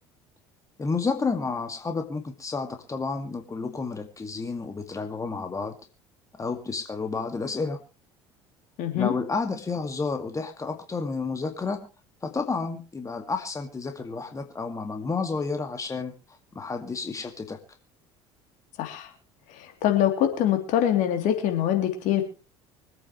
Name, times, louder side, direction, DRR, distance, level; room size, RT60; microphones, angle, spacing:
voice 1, 0.8-5.7 6.4-7.8 8.9-11.9 12.2-16.1 16.6-17.6, left 4 dB, 20° left, 6 dB, 2.1 m, -30 dB
voice 2, 8.8-9.1 18.8-19.1 19.5-22.2, left 11 dB, 60° left, 5 dB, 3.2 m, -24 dB
25.0 x 8.9 x 3.2 m, 0.32 s
hypercardioid pair, 65°, 14 cm